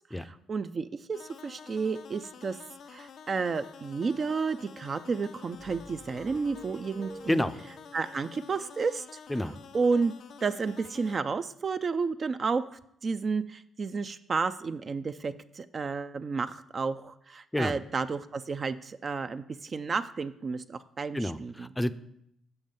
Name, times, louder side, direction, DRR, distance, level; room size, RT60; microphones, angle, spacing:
voice 1, 0.5-2.6 2.9-7.4 7.9-9.1 9.7-10.1 10.4-21.7, right 4 dB, 45° right, 10 dB, 0.4 m, -31 dB
sound 1, 1.1-11.2, left 7 dB, 65° left, 0.4 m, -49 dB
sound 2, 5.6-8.0, right 2 dB, 20° right, 0.8 m, -48 dB
voice 2, 21.1-21.9, left 1 dB, 10° left, 12 dB, 0.5 m, -29 dB
7.0 x 5.4 x 5.2 m, 0.73 s
supercardioid pair, 60°, 0 cm